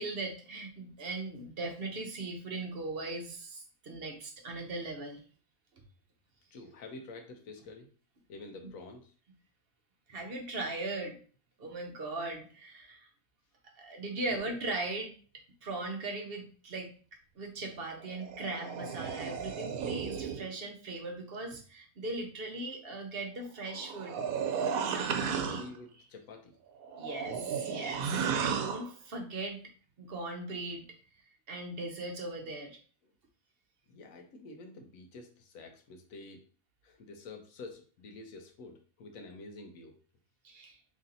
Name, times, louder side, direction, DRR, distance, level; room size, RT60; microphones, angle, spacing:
voice 1, 0.0-5.2 10.1-11.2 11.6-13.1 13.8-15.1 15.6-16.9 17.4-24.2 24.9-25.6 27.0-29.7 30.0-30.8 31.5-32.8 40.4-40.8, right 2 dB, 50° right, 3 dB, 0.8 m, -39 dB
voice 2, 6.5-7.9 8.3-9.1 25.2-26.6 33.9-36.4 36.8-40.0, left 3 dB, 75° left, 4 dB, 1.0 m, -48 dB
sound 1, 17.9-20.5 23.6-25.8 26.8-28.9, right 6 dB, 80° right, 1.0 m, -34 dB
3.1 x 2.7 x 3.8 m, 0.41 s
omnidirectional pair, 1.5 m